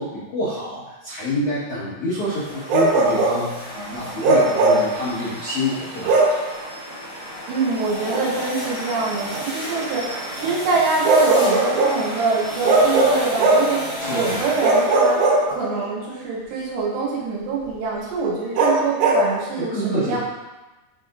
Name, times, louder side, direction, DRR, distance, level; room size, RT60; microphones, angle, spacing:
voice 1, 0.0-6.2 14.0-14.4 19.6-20.2, left 1 dB, 75° left, -10 dB, 1.7 m, -27 dB
sound 1, 2.2-15.4, equal, 55° left, 1.1 m, -32 dB
Bark, 2.7-3.4 4.2-4.9 6.1-6.4 8.1-8.3 11.1-12.0 12.7-13.8 14.6-15.9 18.6-19.3, right 2 dB, 70° right, 2.8 m, -18 dB
voice 2, 7.5-15.2 15.5-20.2, right 4 dB, 90° right, -6 dB, 4.9 m, -25 dB
12.0 x 4.2 x 2.5 m, 1.1 s
omnidirectional pair, 6.0 m